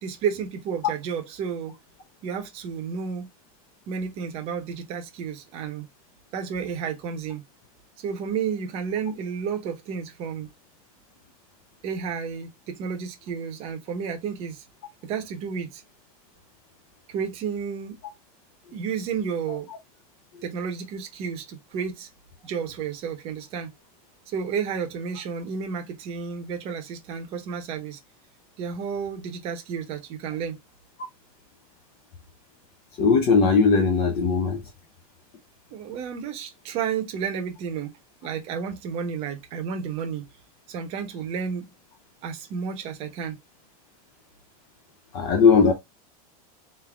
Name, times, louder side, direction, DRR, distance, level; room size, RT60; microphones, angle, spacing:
voice 1, 0.0-1.7 2.2-3.3 3.9-5.9 6.3-7.4 8.0-10.5 11.8-14.6 15.0-15.8 17.1-18.0 18.7-19.7 20.4-22.1 22.4-23.7 24.3-28.0 28.6-30.6 35.7-37.9 38.2-40.3 40.7-41.7 42.2-43.4, right 6 dB, 30° right, 0.9 m, -31 dB
voice 2, 33.0-34.6 45.1-45.7, left 5 dB, 35° left, 0.7 m, -18 dB
3.8 x 2.7 x 3.5 m
supercardioid pair, 170°, 19 cm